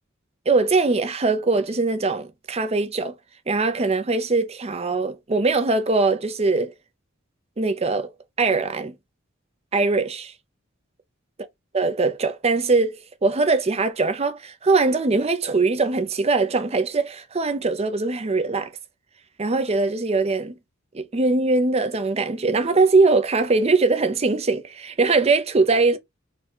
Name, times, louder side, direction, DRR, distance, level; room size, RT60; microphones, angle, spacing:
voice 1, 0.5-3.2 3.5-6.7 7.6-8.1 8.4-9.0 9.7-10.3 11.7-18.7 19.4-20.5 20.9-26.0, right 3 dB, 30° right, 0.6 m, -21 dB
4.1 x 2.3 x 4.3 m
head